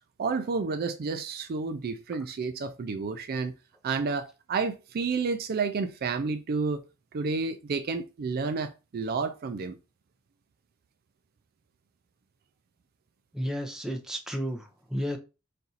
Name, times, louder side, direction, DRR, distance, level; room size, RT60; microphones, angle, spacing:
voice 1, 0.2-3.5 3.8-6.8 7.1-9.8, right 4 dB, 45° right, 0.4 m, -30 dB
voice 2, 13.3-15.2, equal, 5° right, 0.6 m, -32 dB
4.2 x 2.5 x 4.0 m
head